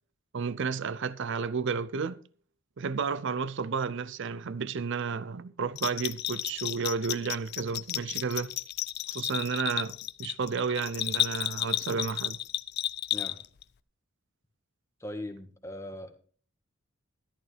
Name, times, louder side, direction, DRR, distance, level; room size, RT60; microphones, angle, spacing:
voice 1, 0.3-2.2 2.8-8.5 9.1-12.4, right 5 dB, 60° right, 0.5 m, -32 dB
Bell, 5.8-13.6, left 13 dB, 50° left, 0.5 m, -33 dB
voice 2, 15.0-16.1, left 1 dB, 15° left, 1.5 m, -39 dB
13.5 x 11.5 x 3.4 m
head